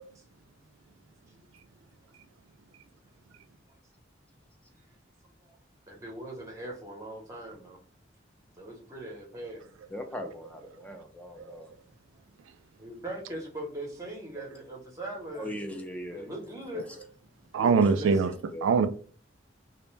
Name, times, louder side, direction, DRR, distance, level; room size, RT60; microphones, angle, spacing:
voice 1, 5.9-7.8 8.6-9.6 12.8-15.5 16.1-16.9 17.7-18.1, right 1 dB, 15° right, 0.7 m, -40 dB
voice 2, 9.9-11.7 15.3-16.3 16.7-17.0 17.6-17.9 18.5-18.7, left 1 dB, 5° left, 0.3 m, -39 dB
voice 3, 17.5-18.3 18.6-18.9, right 5 dB, 90° right, 0.3 m, -22 dB
2.4 x 2.1 x 3.1 m
head